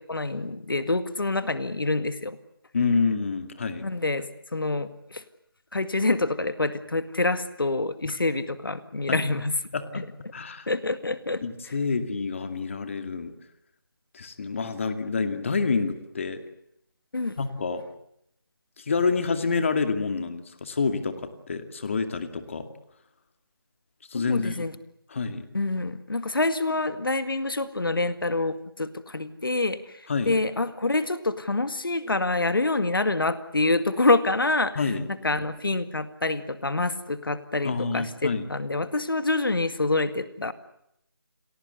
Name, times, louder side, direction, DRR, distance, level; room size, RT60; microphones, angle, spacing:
voice 1, 0.1-2.4 3.8-5.2 5.7-9.6 10.0-10.1 10.7-11.4 17.1-17.4 24.1-24.8 25.5-34.9 35.2-40.5, left 2 dB, 70° left, 11 dB, 2.0 m, -26 dB
voice 2, 2.7-3.8 9.1-9.2 9.7-10.0 10.3-10.7 11.4-13.3 14.1-16.4 17.4-17.8 18.8-21.2 21.5-22.7 24.1-24.6 25.1-25.5 30.1-30.4 34.8-35.1 37.6-38.5, left 4 dB, 35° left, 9 dB, 2.4 m, -27 dB
30.0 x 21.0 x 8.1 m, 0.77 s
figure-of-eight pair, 165°, 12 cm